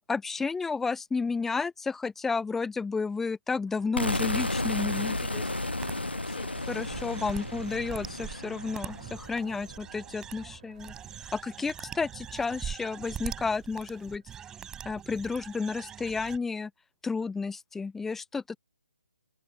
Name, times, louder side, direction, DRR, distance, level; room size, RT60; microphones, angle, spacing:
voice 1, 0.1-5.5 6.7-10.9 11.3-14.2 14.8-16.7 17.0-18.6, left 4 dB, 5° left, 0.8 m, -32 dB
sound 1, 3.6-14.3, right 13 dB, 35° right, 3.3 m, -55 dB
sound 2, 4.0-9.8, left 2 dB, 85° left, 1.2 m, -33 dB
voice 2, 5.4-7.5, left 9 dB, 40° left, 4.8 m, -52 dB
sound 3, 5.8-5.9 6.4-16.4, right 9 dB, 10° right, 6.1 m, -42 dB
figure-of-eight pair, 140°, 6 cm